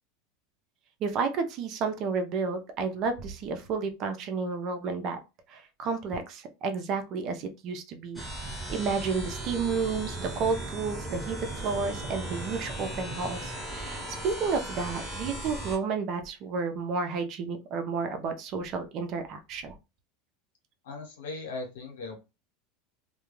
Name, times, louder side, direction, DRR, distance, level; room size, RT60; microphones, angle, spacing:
voice 1, 1.0-5.2 5.5-8.2 8.7-19.7, right 4 dB, 50° right, 0.6 m, -31 dB
sound 1, 8.2-15.8, right 1 dB, ahead, 1.2 m, -37 dB
voice 2, 20.8-22.2, left 3 dB, 85° left, 1.0 m, -38 dB
2.3 x 2.2 x 3.1 m
supercardioid pair, 115°, 0 cm